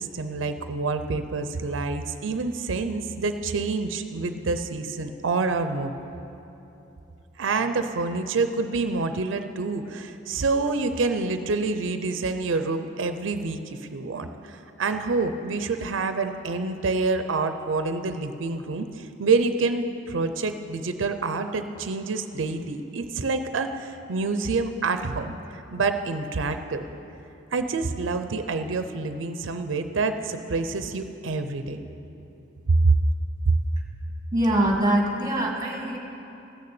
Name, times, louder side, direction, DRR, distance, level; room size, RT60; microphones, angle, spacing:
voice 1, 0.0-5.9 7.4-26.8 27.5-31.8 32.7-33.0 33.5-33.6, right 3 dB, 90° right, 8 dB, 0.6 m, -27 dB
voice 2, 34.3-36.0, right 1 dB, 20° right, 0 dB, 1.7 m, -23 dB
13.5 x 6.7 x 8.6 m, 2.9 s
head